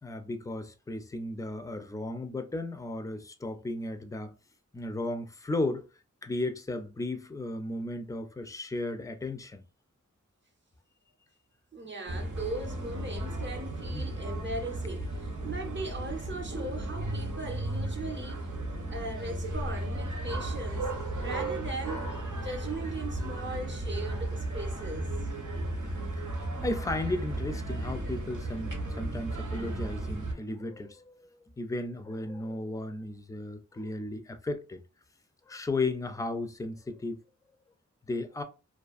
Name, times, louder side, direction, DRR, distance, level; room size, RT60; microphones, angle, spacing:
voice 1, 0.0-4.3 4.7-5.9 6.2-9.6 13.9-14.0 26.6-31.3 31.6-34.8 35.5-37.2 38.1-38.4, left 2 dB, 10° left, 0.3 m, -35 dB
voice 2, 11.7-18.5 18.9-20.9 21.2-22.0 22.3-25.3, right 2 dB, 40° right, 0.6 m, -39 dB
sound 1, 12.1-30.3, right 1 dB, 90° right, 0.8 m, -35 dB
2.4 x 2.4 x 2.4 m
wide cardioid pair, 90°, 30 cm